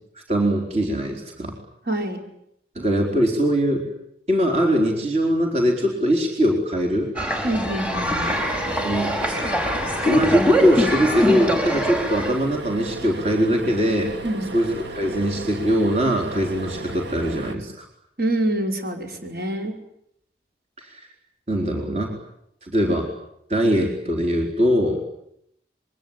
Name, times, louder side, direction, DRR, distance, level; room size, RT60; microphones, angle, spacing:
voice 1, 0.3-1.5 2.7-3.8 4.3-7.1 8.4-8.5 8.8-9.1 10.0-14.1 14.5-17.8 20.8-21.1 21.5-22.1 22.6-23.1 23.5-25.0, equal, 35° right, 1 dB, 4.3 m, -21 dB
voice 2, 1.9-2.2 7.4-8.4 14.2-14.5 18.2-19.7, right 1 dB, 60° right, 2 dB, 5.1 m, -26 dB
sound 1, 7.2-12.4, equal, 5° right, 4.9 m, -23 dB
sound 2, 8.2-17.5, right 2 dB, 85° right, 2.0 m, -35 dB
27.0 x 23.5 x 9.1 m, 0.76 s
head